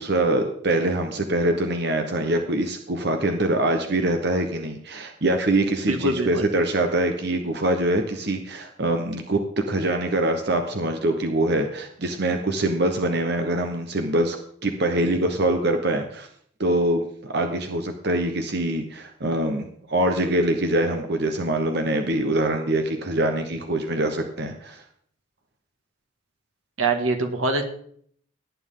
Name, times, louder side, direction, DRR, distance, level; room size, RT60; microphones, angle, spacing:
voice 1, 0.0-9.4 9.7-14.4 14.6-16.3 16.6-24.8, right 1 dB, 55° right, 5 dB, 1.1 m, -24 dB
voice 2, 5.8-6.5 26.8-27.7, right 2 dB, 90° right, 4 dB, 2.1 m, -24 dB
18.0 x 9.7 x 3.8 m, 0.62 s
head